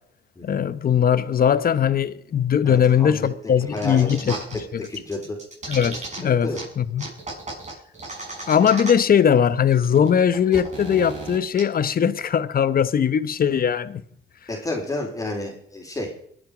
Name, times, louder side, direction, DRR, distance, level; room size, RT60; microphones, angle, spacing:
voice 1, 0.4-4.3 4.7-4.9 5.7-6.5 6.8-7.1 8.5-14.0, left 8 dB, 45° left, 1.0 m, -20 dB
voice 2, 2.6-3.3 3.7-4.6 4.9-5.4 6.2-6.6 14.5-16.2, left 2 dB, 15° left, 4.2 m, -31 dB
sound 1, 3.8-4.6 4.8-6.2 6.5-6.6 7.0-9.2 9.4-9.5 9.7-11.6, right 3 dB, 35° right, 7.8 m, -34 dB
22.5 x 9.0 x 5.0 m
cardioid pair, 90°, 20 cm